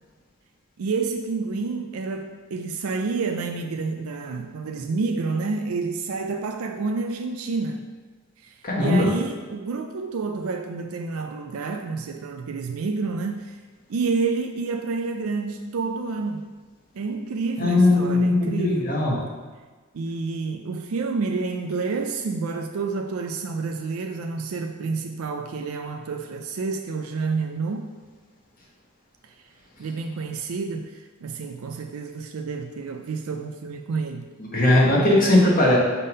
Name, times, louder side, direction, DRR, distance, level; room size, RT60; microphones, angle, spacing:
voice 1, 0.8-7.9 8.4-13.6 13.9-16.6 16.9-18.9 19.9-27.9 29.8-34.3, right 4 dB, 85° right, 5 dB, 0.4 m, -29 dB
voice 2, 8.6-9.1 17.6-19.2 34.4-35.8, left 2 dB, 40° left, -4 dB, 1.4 m, -19 dB
5.5 x 3.6 x 5.3 m, 1.3 s
head